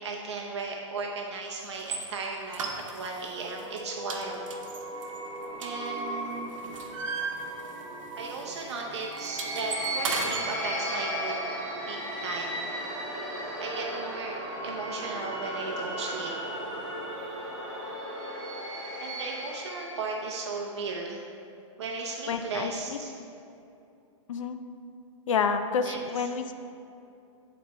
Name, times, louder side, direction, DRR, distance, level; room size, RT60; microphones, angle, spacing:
voice 1, 0.0-4.4 5.6-6.5 8.2-11.4 11.9-12.7 13.6-14.4 14.6-16.3 19.0-21.2 21.8-23.1 25.8-26.3, right 4 dB, 60° right, 0 dB, 0.7 m, -36 dB
sound 1, 1.8-2.0 2.5-3.3 3.6-3.8 4.1-6.2 6.5-8.0 8.2-8.4 8.7-10.4, right 4 dB, 80° right, 1.1 m, -35 dB
sound 2, 3.3-20.1, right 1 dB, 25° right, 1.7 m, -36 dB
voice 2, 22.3-23.0 24.3-24.6 25.3-26.5, left 5 dB, 75° left, 8 dB, 0.5 m, -29 dB
9.1 x 4.2 x 4.3 m, 2.7 s
hypercardioid pair, 170°, 16 cm